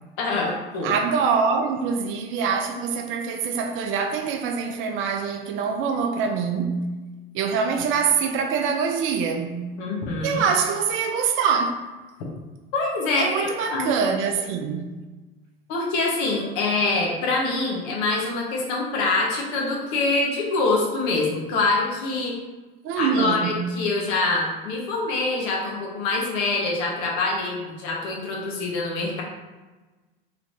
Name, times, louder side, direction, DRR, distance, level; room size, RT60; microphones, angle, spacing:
voice 1, 0.2-0.9 9.8-10.4 12.7-13.9 15.7-22.3 23.0-29.2, left 3 dB, 55° left, 1.1 m, -25 dB
voice 2, 0.8-6.8 7.3-9.7 10.2-11.8 13.2-14.9 22.8-23.6, right 6 dB, 45° right, 0.5 m, -24 dB
3.3 x 3.0 x 2.7 m
hypercardioid pair, 90°, 29 cm